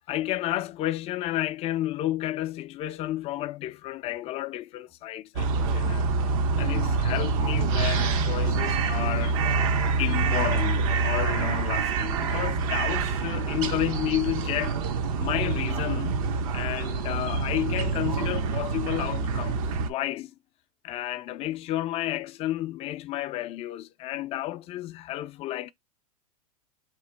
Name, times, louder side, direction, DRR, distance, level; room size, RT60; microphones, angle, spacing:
voice 1, 0.1-6.3 6.6-9.4 10.0-14.8 15.2-16.2 16.5-19.6 19.9-20.3 20.8-25.7, left 14 dB, 30° left, 0.4 m, -31 dB
sound 1, 5.4-19.9, right 4 dB, 60° right, 0.7 m, -26 dB
2.9 x 2.8 x 4.4 m
hypercardioid pair, 110°, 20 cm